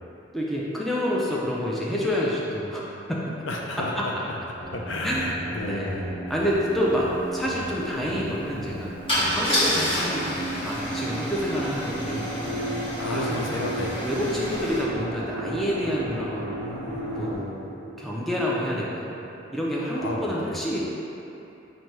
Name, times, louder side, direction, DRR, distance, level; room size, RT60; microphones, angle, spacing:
voice 1, 0.3-2.8 3.1-3.3 4.0-4.1 5.0-5.3 5.7-6.0 6.3-10.3 10.6-12.5 13.1-13.5 14.0-16.6 17.1-19.2 19.5-20.9, equal, ahead, -6 dB, 0.4 m, -28 dB
voice 2, 3.5-4.4 4.7-6.1 13.0-14.0 16.6-17.3 20.0-20.5, left 1 dB, 70° left, -1 dB, 0.5 m, -32 dB
sound 1, 4.5-17.3, right 1 dB, 25° right, 1.5 m, -34 dB
Car / Engine starting / Idling, 6.5-6.6 6.8-7.1 9.1-14.8, equal, 25° left, 1.2 m, -29 dB
4.4 x 2.7 x 4.5 m, 2.9 s
head